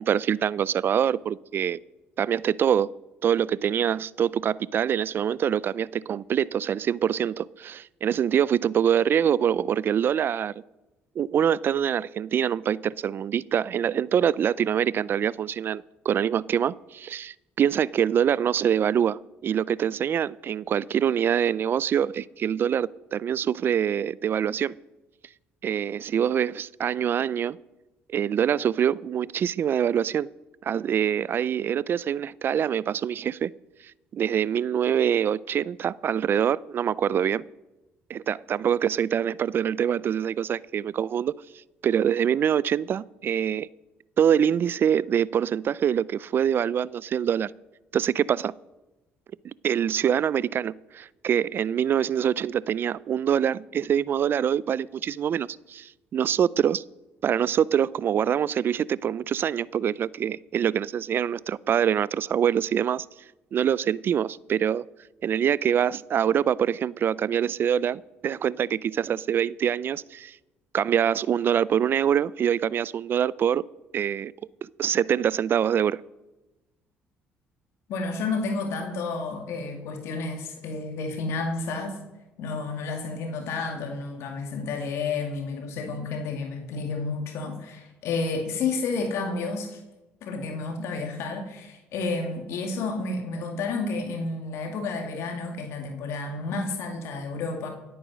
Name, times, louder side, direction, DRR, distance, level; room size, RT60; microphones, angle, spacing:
voice 1, 0.0-1.8 2.2-2.9 3.2-10.5 11.2-24.7 25.6-27.6 28.1-30.3 30.6-33.5 34.1-37.4 38.1-41.3 41.8-43.7 44.2-47.5 47.9-48.5 49.6-56.8 57.2-63.1 63.5-64.8 65.2-70.4 70.7-73.6 73.9-74.3 74.8-76.0, right 9 dB, 50° right, 22 dB, 0.4 m, -25 dB
voice 2, 77.9-82.0 82.4-89.8 90.2-97.7, left 3 dB, 70° left, 4 dB, 2.3 m, -31 dB
16.5 x 9.0 x 6.3 m, 1.0 s
supercardioid pair, 80°, 5 cm